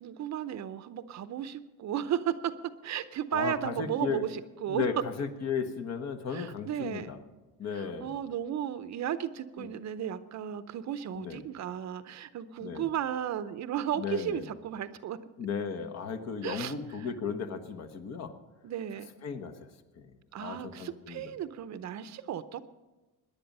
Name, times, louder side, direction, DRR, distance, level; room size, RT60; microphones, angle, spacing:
voice 1, 0.0-5.0 6.3-7.1 7.7-15.2 16.4-16.7 18.6-19.1 20.3-22.6, right 10 dB, 45° right, 13 dB, 0.7 m, -34 dB
voice 2, 3.3-4.3 4.7-7.2 7.6-8.1 9.6-9.7 11.1-11.4 12.6-12.9 14.0-14.5 15.4-18.3 19.2-19.5 19.9-20.1 20.4-21.2, left 6 dB, 45° left, 9 dB, 1.3 m, -35 dB
18.0 x 10.5 x 5.4 m, 1.1 s
cardioid pair, 140°, 37 cm